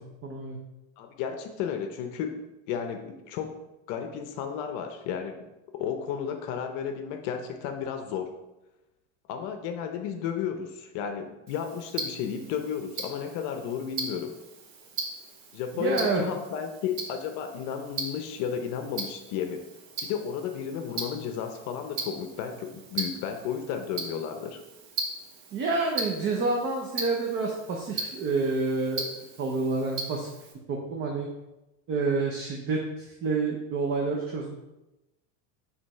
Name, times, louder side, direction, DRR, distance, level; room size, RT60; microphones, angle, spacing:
voice 1, 0.2-0.6 15.8-16.2 25.5-29.1 29.4-30.3 30.7-31.3 31.9-34.5, right 3 dB, 35° right, 0 dB, 0.8 m, -28 dB
voice 2, 1.0-2.3 2.7-3.5 3.9-5.4 5.7-8.3 9.3-14.3 15.5-19.6 20.0-24.6, left 8 dB, 55° left, 6 dB, 0.7 m, -33 dB
Tick-tock, 11.5-30.5, right 3 dB, 80° right, 1.5 m, -39 dB
5.1 x 3.4 x 5.6 m, 0.97 s
supercardioid pair, 145°, 37 cm